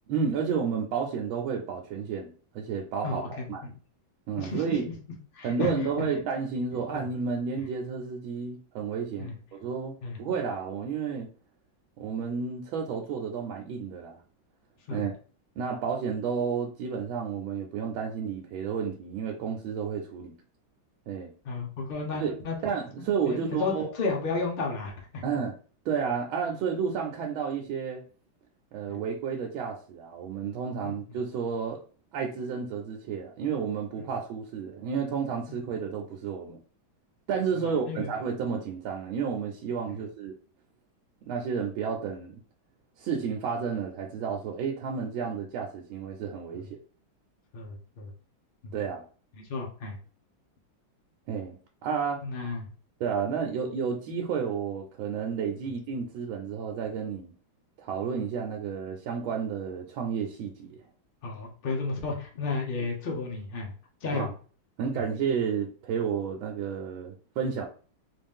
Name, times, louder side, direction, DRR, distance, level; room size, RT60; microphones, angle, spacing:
voice 1, 0.1-3.7 4.3-4.9 5.4-11.3 12.0-14.2 14.9-15.1 15.6-20.3 21.1-21.3 22.2-22.4 22.6-23.9 25.2-25.5 25.8-28.0 28.7-31.8 32.1-36.6 37.3-40.3 41.2-42.4 43.0-46.8 48.7-49.0 51.3-52.2 53.0-57.3 57.8-60.8 64.1-64.3 64.8-67.6, right 6 dB, 85° right, 1 dB, 1.4 m, -31 dB
voice 2, 3.0-3.7 4.4-4.9 5.3-6.1 6.9-7.0 9.2-9.3 10.0-10.2 14.9-15.1 21.4-22.6 23.3-25.2 28.9-29.0 30.8-30.9 34.0-34.1 37.6-38.1 39.9-40.0 46.5-46.7 47.5-48.1 49.5-50.0 52.2-52.6 61.2-63.7 64.0-64.3 64.9-65.0, left 4 dB, 60° left, 0 dB, 0.5 m, -33 dB
3.9 x 2.5 x 3.5 m, 0.40 s
omnidirectional pair, 2.1 m